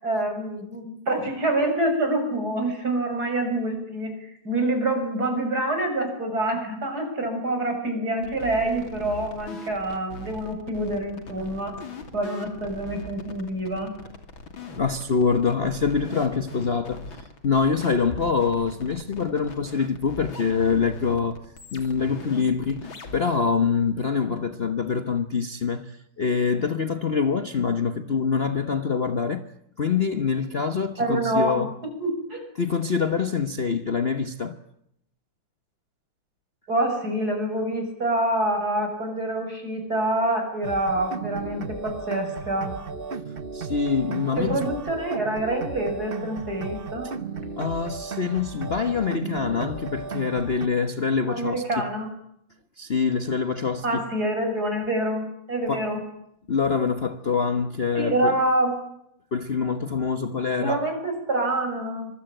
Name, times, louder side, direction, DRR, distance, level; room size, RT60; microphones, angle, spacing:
voice 1, 0.0-11.7 12.1-13.9 31.0-31.7 32.0-32.4 36.7-42.7 44.4-47.1 51.3-52.1 53.8-56.0 57.9-58.7 60.6-62.1, right 1 dB, 50° right, 7.5 m, -26 dB
sound 1, 8.2-23.2, left 3 dB, 90° left, 3.7 m, -41 dB
voice 2, 14.8-17.0 17.4-21.4 21.7-29.4 29.8-31.7 32.6-34.6 43.5-44.6 47.6-51.8 52.8-54.0 55.7-55.8 56.5-58.3 59.3-60.8, left 5 dB, 40° left, 1.1 m, -25 dB
sound 2, 40.6-50.7, right 5 dB, 35° right, 1.1 m, -35 dB
25.0 x 23.5 x 9.1 m
omnidirectional pair, 2.1 m